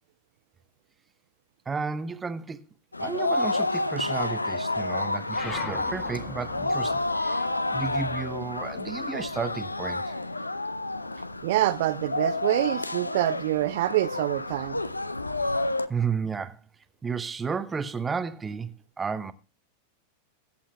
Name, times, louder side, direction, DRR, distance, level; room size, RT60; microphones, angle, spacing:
voice 1, 1.7-2.6 3.0-7.5 7.7-10.2 15.9-16.6 17.0-19.3, right 5 dB, 15° right, 0.8 m, -32 dB
sound 1, 2.9-15.9, left 2 dB, 80° left, 0.5 m, -30 dB
sound 2, 5.3-10.2 10.5-11.9, left 4 dB, 35° left, 5.2 m, -42 dB
voice 2, 11.4-14.8, right 15 dB, 55° right, 0.5 m, -26 dB
22.0 x 8.7 x 2.3 m
figure-of-eight pair, 90°, 0 cm